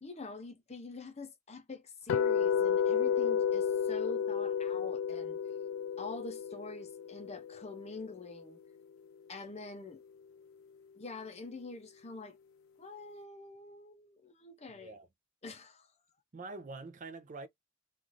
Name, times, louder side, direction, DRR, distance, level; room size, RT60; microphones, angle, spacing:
voice 1, 0.0-5.4 6.0-8.6 9.3-10.0 11.0-12.4 12.8-14.9 15.4-15.9, left 3 dB, 30° left, 0.6 m, -45 dB
sound 1, 2.1-8.2, left 7 dB, 80° left, 0.3 m, -32 dB
voice 2, 14.7-15.1 16.3-17.5, right 3 dB, 40° right, 0.4 m, -45 dB
3.0 x 2.5 x 2.5 m
head